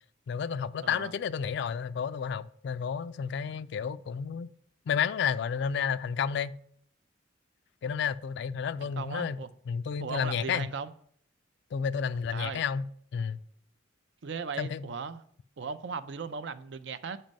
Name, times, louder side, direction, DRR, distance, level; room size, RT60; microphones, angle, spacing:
voice 1, 0.3-4.5 4.9-6.5 7.8-9.4 9.7-10.7 11.7-12.8 13.1-13.4 14.6-14.9, left 7 dB, 60° left, 0.3 m, -31 dB
voice 2, 0.8-1.1 8.8-9.5 10.0-10.9 12.3-12.6 14.2-15.2 15.6-17.2, right 5 dB, 60° right, 0.5 m, -37 dB
7.5 x 5.3 x 5.2 m
head